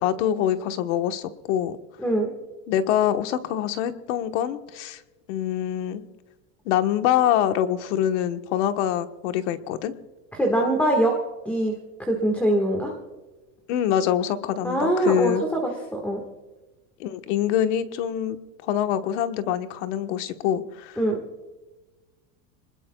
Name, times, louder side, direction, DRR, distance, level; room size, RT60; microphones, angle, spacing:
voice 1, 0.0-1.8 2.7-5.0 5.3-6.0 6.6-9.9 13.7-15.4 17.0-21.0, left 10 dB, 60° left, 8 dB, 1.2 m, -25 dB
voice 2, 10.3-11.1 11.4-11.7 12.0-12.9 14.6-16.2 21.0-21.2, right 1 dB, 5° left, 0 dB, 1.5 m, -23 dB
27.5 x 20.0 x 2.3 m, 1.2 s
supercardioid pair, 165°, 40 cm